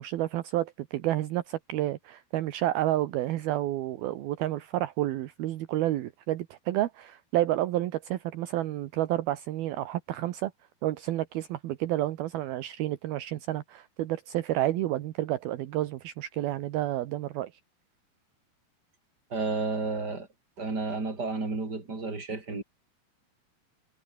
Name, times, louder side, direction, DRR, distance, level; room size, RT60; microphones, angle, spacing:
voice 1, 0.0-10.5 10.8-17.5, right 14 dB, 75° right, 2.9 m, -30 dB
voice 2, 19.3-20.3 20.6-22.6, right 3 dB, 25° right, 5.5 m, -31 dB
omnidirectional pair, 4.7 m